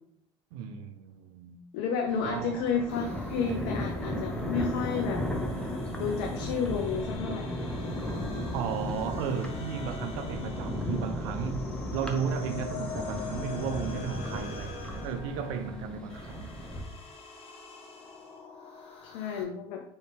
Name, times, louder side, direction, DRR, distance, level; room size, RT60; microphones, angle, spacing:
voice 1, 0.5-1.7 2.2-2.7 8.5-16.5, right 6 dB, 80° right, 0.5 m, -34 dB
voice 2, 1.7-5.2 6.0-7.5 19.0-19.8, left 6 dB, 75° left, 0.5 m, -31 dB
Thunder, 2.1-16.8, left 1 dB, 5° left, 0.9 m, -35 dB
sound 1, 2.9-19.4, left 5 dB, 40° left, 1.0 m, -45 dB
4.2 x 3.1 x 3.2 m
supercardioid pair, 80°, 16 cm